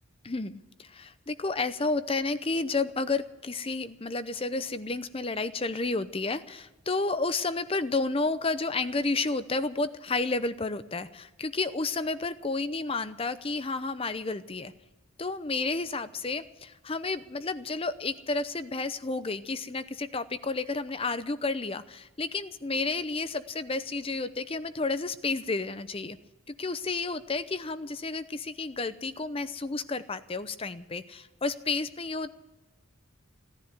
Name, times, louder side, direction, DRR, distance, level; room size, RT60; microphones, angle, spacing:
voice 1, 0.2-14.7 15.2-26.2 26.5-32.3, left 3 dB, 25° left, 13 dB, 0.6 m, -31 dB
17.0 x 10.5 x 8.0 m, 1.1 s
head